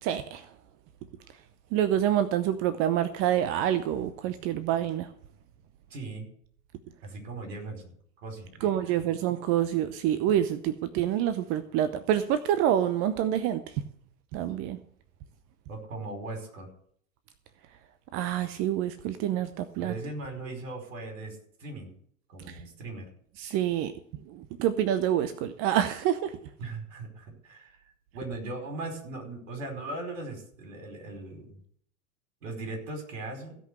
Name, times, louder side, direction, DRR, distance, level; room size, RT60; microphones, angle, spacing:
voice 1, 0.0-0.5 1.7-5.1 8.6-13.8 14.3-14.8 18.1-19.9 22.5-22.6 23.4-23.9 24.3-26.3, right 11 dB, 35° right, 13 dB, 0.7 m, -27 dB
voice 2, 5.9-6.3 7.0-8.9 15.7-16.7 19.8-21.9 22.3-23.1 26.6-27.8 28.1-31.6 32.4-33.5, right 2 dB, 65° right, 3 dB, 5.0 m, -39 dB
16.0 x 5.5 x 7.8 m, 0.63 s
figure-of-eight pair, 95°, 41 cm